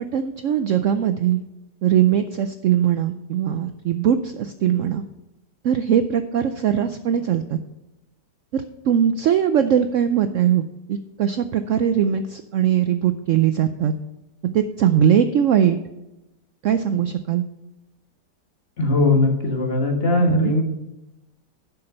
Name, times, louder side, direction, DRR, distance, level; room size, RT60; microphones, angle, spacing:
voice 1, 0.0-1.4 1.8-5.0 5.6-7.6 8.5-10.6 10.9-13.9 14.5-15.8 16.6-17.4 20.2-20.5, right 9 dB, 70° right, 10 dB, 0.7 m, -20 dB
voice 2, 18.8-20.6, left 3 dB, 40° left, 2 dB, 1.5 m, -20 dB
11.5 x 5.9 x 5.4 m, 0.95 s
omnidirectional pair, 1.8 m